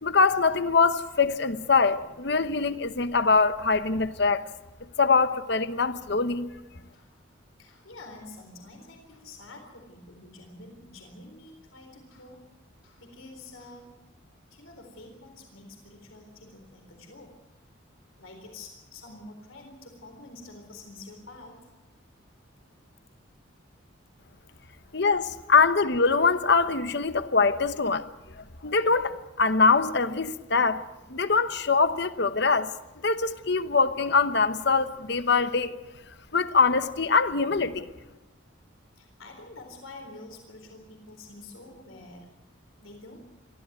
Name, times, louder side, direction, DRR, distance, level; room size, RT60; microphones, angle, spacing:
voice 1, 0.0-4.5 5.0-6.5 24.9-28.1 28.6-32.7 33.0-35.8 36.3-37.9, left 4 dB, 55° left, 1.0 m, -23 dB
voice 2, 7.6-12.4 12.8-13.9 14.5-17.3 18.2-21.6 39.0-42.3 42.8-43.2, left 2 dB, 90° left, 4.0 m, -47 dB
23.0 x 15.0 x 9.4 m
head